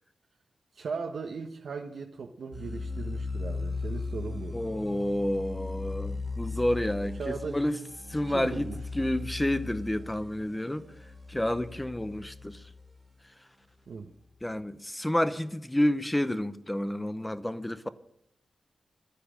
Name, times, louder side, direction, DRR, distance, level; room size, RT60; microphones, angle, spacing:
voice 1, 0.7-4.6 7.2-7.7 8.2-8.8 13.9-14.1, right 5 dB, 70° right, 1.1 m, -38 dB
sound 1, 2.5-13.0, left 3 dB, 10° right, 1.5 m, -38 dB
voice 2, 4.5-7.8 8.1-8.7 8.9-10.9 11.3-12.6 14.4-17.9, left 1 dB, 10° left, 0.7 m, -29 dB
12.0 x 10.0 x 8.9 m
wide cardioid pair, 170°, 0 cm